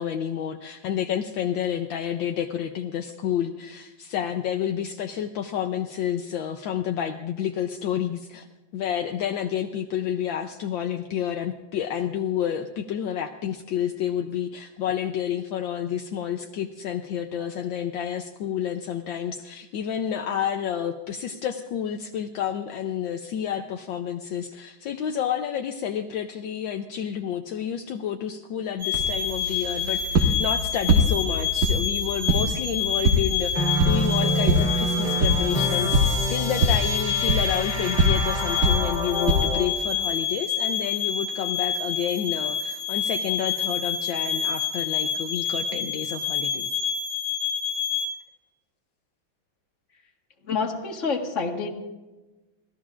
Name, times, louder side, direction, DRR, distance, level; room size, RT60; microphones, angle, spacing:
voice 1, 0.0-8.5 8.7-46.8, left 9 dB, 75° left, 5 dB, 1.4 m, -30 dB
sound 1, 28.8-48.1, left 7 dB, 80° right, 3.4 m, -28 dB
sound 2, 28.9-39.7, equal, 50° right, 1.9 m, -25 dB
sound 3, 33.5-39.7, equal, 20° left, 2.0 m, -27 dB
voice 2, 50.5-51.7, left 4 dB, 40° left, 2 dB, 1.8 m, -27 dB
25.5 x 17.5 x 2.5 m, 1.1 s
omnidirectional pair, 2.3 m